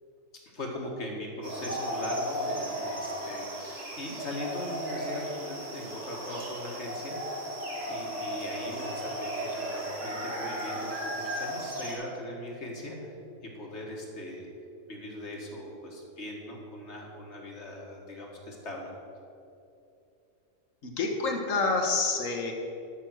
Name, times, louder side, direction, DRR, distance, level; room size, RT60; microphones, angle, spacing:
voice 1, 0.5-7.2 7.9-13.2 13.5-14.5 14.9-18.9, left 1 dB, 55° left, -1 dB, 1.9 m, -40 dB
sound 1, 1.4-11.9, equal, 50° right, 2.6 m, -35 dB
voice 2, 20.8-22.5, left 3 dB, 70° left, 2 dB, 1.7 m, -28 dB
13.0 x 6.4 x 6.2 m, 2.6 s
omnidirectional pair, 1.4 m